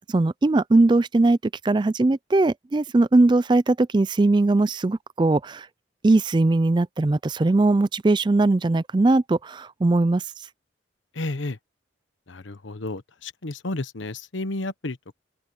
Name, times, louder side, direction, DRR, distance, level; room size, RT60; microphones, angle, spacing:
voice 1, 0.1-1.4 1.6-5.7 6.0-10.2, right 2 dB, 25° right, 0.3 m, -20 dB
voice 2, 11.1-11.6 12.3-15.1, left 2 dB, 85° left, 1.1 m, -32 dB
open air
head